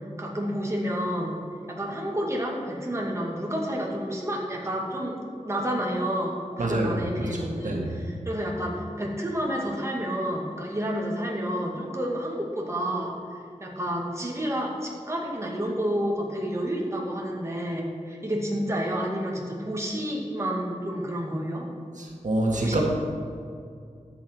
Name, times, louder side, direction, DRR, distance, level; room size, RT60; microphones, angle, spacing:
voice 1, 0.2-1.3 1.7-5.2 5.4-13.1 13.6-21.7 22.5-22.8, equal, 20° right, -2 dB, 2.2 m, -30 dB
voice 2, 6.6-7.9 22.0-22.8, right 1 dB, 80° right, -1 dB, 1.7 m, -27 dB
13.0 x 8.1 x 4.7 m, 2.3 s
wide cardioid pair, 80°, 13 cm